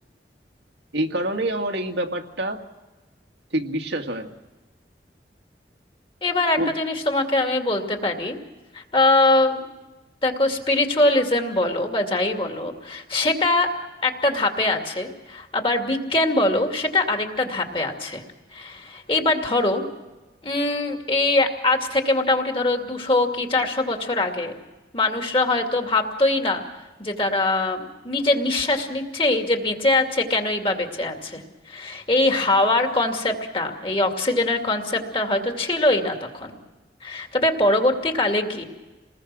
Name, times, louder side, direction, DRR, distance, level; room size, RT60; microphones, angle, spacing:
voice 1, 0.9-2.6 3.5-4.3 6.6-6.7, right 1 dB, 85° right, 3 dB, 2.0 m, -26 dB
voice 2, 6.2-8.4 8.7-9.6 10.2-13.7 14.0-18.2 18.5-19.9 20.4-24.5 24.9-26.6 27.0-31.4 31.7-36.5 37.0-38.6, left 2 dB, 30° left, 3 dB, 2.5 m, -22 dB
29.0 x 20.0 x 6.2 m, 1.1 s
head